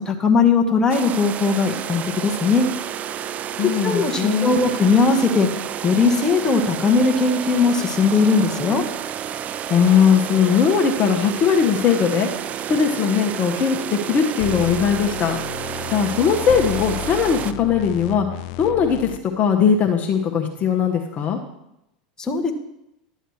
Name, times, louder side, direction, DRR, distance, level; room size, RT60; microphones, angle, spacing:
voice 1, 0.0-2.7 3.6-5.5 5.8-8.8 22.2-22.5, left 4 dB, 15° left, 2 dB, 1.2 m, -19 dB
sound 1, 0.9-17.5, right 10 dB, 35° right, 0.4 m, -30 dB
voice 2, 3.6-4.6 9.7-12.3 12.7-15.4 15.9-18.3 18.6-19.1 19.4-21.4, left 7 dB, 40° left, 2 dB, 1.0 m, -19 dB
sound 2, 14.4-19.2, left 12 dB, 60° left, 0.4 m, -33 dB
11.5 x 8.0 x 3.2 m, 0.84 s
hypercardioid pair, 95°, 4 cm